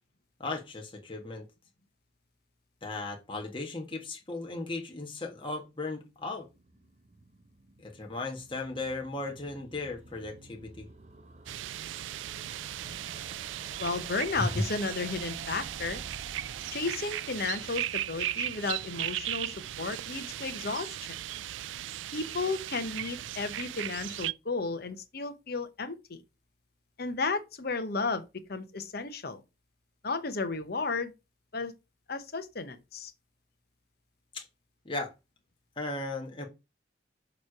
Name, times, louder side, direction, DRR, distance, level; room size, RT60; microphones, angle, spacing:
voice 1, 0.4-1.5 2.8-6.5 7.8-10.9 34.3-34.4 34.8-35.1 35.8-36.5, left 3 dB, 25° left, 1.3 m, -37 dB
sound 1, 6.4-19.4 19.7-19.8 20.0-20.1 20.3-20.4, right 2 dB, 35° right, 0.8 m, -51 dB
sound 2, 11.5-24.3, right 13 dB, 80° right, 0.3 m, -37 dB
voice 2, 13.8-16.0 16.7-21.2 22.1-26.2 27.0-28.2 28.5-29.4 30.0-31.1 31.5-31.7 32.1-33.1, left 4 dB, 55° left, 0.9 m, -33 dB
7.1 x 3.2 x 5.9 m
head